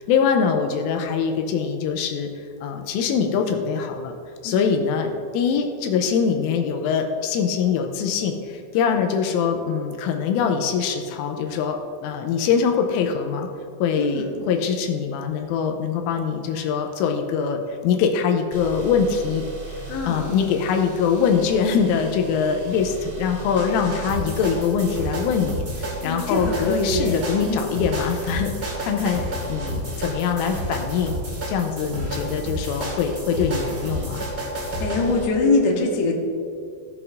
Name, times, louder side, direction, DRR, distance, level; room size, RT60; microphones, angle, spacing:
voice 1, 0.0-2.3 2.6-4.1 4.4-13.5 13.8-19.4 19.7-19.8 20.1-29.2 29.5-31.2 31.5-34.2, left 6 dB, 85° left, 4 dB, 3.2 m, -23 dB
voice 2, 14.0-14.4 19.9-20.3 26.0-27.2 27.5-27.7 34.8-36.1, left 3 dB, 70° left, -1 dB, 2.7 m, -23 dB
sound 1, 18.5-35.3, right 1 dB, 60° right, 1.0 m, -31 dB
16.5 x 7.6 x 2.7 m, 2.3 s
omnidirectional pair, 5.8 m